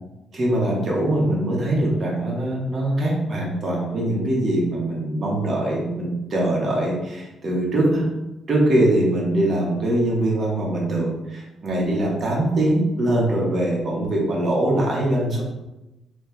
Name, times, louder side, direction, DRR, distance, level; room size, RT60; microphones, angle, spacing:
voice 1, 0.3-8.0 8.5-15.4, right 1 dB, 45° right, -3 dB, 1.5 m, -22 dB
4.2 x 3.3 x 3.4 m, 1.0 s
cardioid pair, 90°, 0 cm